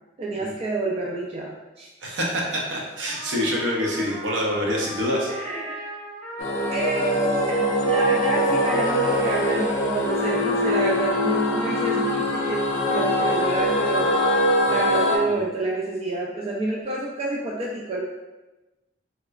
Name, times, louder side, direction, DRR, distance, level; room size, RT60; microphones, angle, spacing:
voice 1, 0.2-1.9 5.3-5.9 6.7-14.1 14.7-18.0, right 2 dB, 30° right, -3 dB, 0.3 m, -28 dB
voice 2, 2.0-5.3 15.2-15.4, equal, 70° right, -3 dB, 0.7 m, -26 dB
Trumpet, 3.1-9.5 10.0-15.3, equal, ahead, 0.6 m, -36 dB
sound 1, 6.4-15.2, left 1 dB, 65° left, 0.5 m, -23 dB
3.1 x 2.9 x 2.4 m, 1.1 s
head